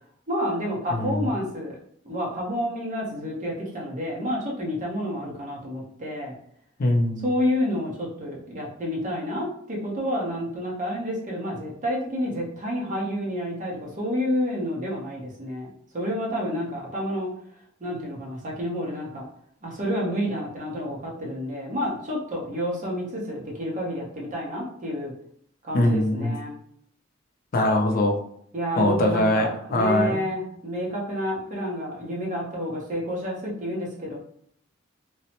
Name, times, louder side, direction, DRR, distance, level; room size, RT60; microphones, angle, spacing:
voice 1, 0.3-1.8 2.0-6.3 7.2-15.7 15.9-17.3 17.8-19.2 19.6-25.1 25.6-26.6 28.5-34.2, equal, 40° right, -3 dB, 0.8 m, -29 dB
voice 2, 0.9-1.3 6.8-7.3 25.7-26.4 27.5-28.2 28.8-30.2, left 1 dB, 45° left, 2 dB, 0.5 m, -22 dB
3.1 x 2.0 x 2.8 m, 0.66 s
head